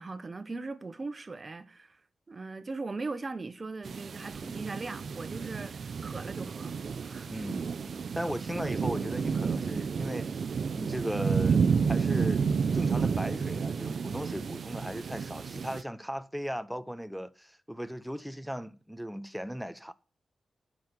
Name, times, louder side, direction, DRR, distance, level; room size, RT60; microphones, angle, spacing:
voice 1, 0.0-2.0 2.3-6.7 7.0-7.3, right 3 dB, 40° right, 1.2 m, -39 dB
sound 1, 3.8-15.8, right 6 dB, 65° right, 0.6 m, -31 dB
voice 2, 7.3-7.6 8.1-10.4 10.7-11.6 11.9-12.5 12.7-19.9, equal, ahead, 0.9 m, -37 dB
9.3 x 6.3 x 7.9 m
cardioid pair, 60°, 0 cm